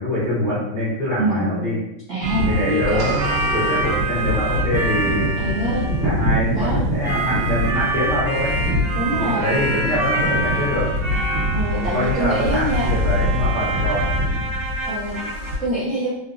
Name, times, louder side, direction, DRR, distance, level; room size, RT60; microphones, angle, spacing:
voice 1, 0.0-1.8 2.4-5.3 6.0-8.6 9.2-10.9 11.9-14.1, left 1 dB, 40° left, -12 dB, 0.6 m, -24 dB
voice 2, 1.2-1.6 2.1-3.0 5.4-5.9 6.5-6.8 8.9-9.5 11.5-12.9 14.8-16.1, right 1 dB, 60° right, -9 dB, 0.8 m, -25 dB
sound 1, 2.2-15.6, right 1 dB, 45° right, 1.2 m, -23 dB
sound 2, 3.0-4.9, right 3 dB, 85° right, 1.7 m, -34 dB
3.8 x 2.3 x 2.5 m, 0.88 s
omnidirectional pair, 2.2 m